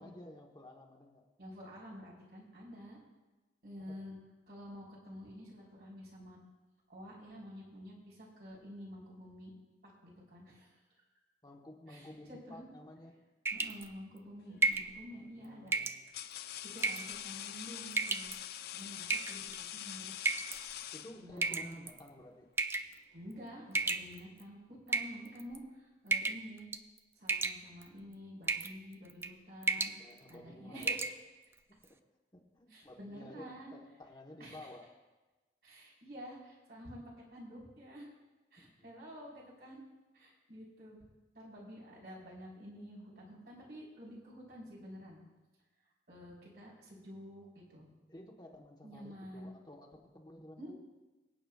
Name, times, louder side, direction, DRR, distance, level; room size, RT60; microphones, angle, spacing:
voice 1, 0.0-1.2 3.9-4.0 11.4-13.2 15.1-16.1 20.9-22.5 29.8-31.0 31.7-32.0 32.3-34.9 38.6-38.9 48.1-50.7, left 1 dB, 25° left, 0 dB, 1.1 m, -53 dB
voice 2, 1.4-3.0 3.6-4.2 4.5-6.4 6.9-9.5 9.8-10.8 11.9-12.6 13.5-15.7 16.6-18.3 18.7-20.3 21.2-21.8 23.1-26.7 27.2-31.2 32.7-33.8 34.4-34.6 35.6-38.1 38.5-39.8 40.1-41.0 41.3-45.2 46.1-47.9 48.8-49.5 50.6-50.7, equal, 65° right, -5 dB, 4.1 m, -49 dB
sound 1, 13.5-13.9 14.6-14.9 15.7-16.0 16.8-17.1 17.9-18.3 19.1-19.6 20.3-20.6 21.4-22.0 22.6-22.9 23.7-24.4 24.9-25.6 26.1-26.5 26.7-27.0 27.3-27.9 28.5-28.7 29.1-29.3 29.6-30.0 30.3-30.4 30.8-31.1, right 3 dB, 15° right, 0.3 m, -33 dB
sound 2, 14.5-14.8 15.6-21.6, left 11 dB, 60° left, 0.4 m, -45 dB
23.5 x 8.8 x 2.4 m, 1.2 s
head